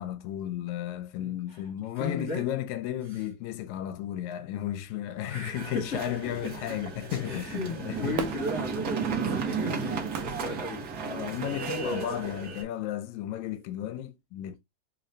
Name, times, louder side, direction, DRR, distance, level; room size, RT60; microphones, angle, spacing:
voice 1, 0.0-8.2 11.0-14.6, left 11 dB, 80° left, 1.9 m, -34 dB
voice 2, 1.1-1.6 2.0-2.4 3.1-3.2 5.2-6.0 6.4-6.5 7.2-10.9 11.8-12.6, left 2 dB, 55° left, 0.7 m, -36 dB
sound 1, 5.5-12.6, right 5 dB, 90° right, 0.8 m, -34 dB
Fireworks, 8.1-11.5 12.0-12.1, right 9 dB, 75° right, 1.6 m, -40 dB
4.7 x 2.6 x 3.1 m
omnidirectional pair, 3.4 m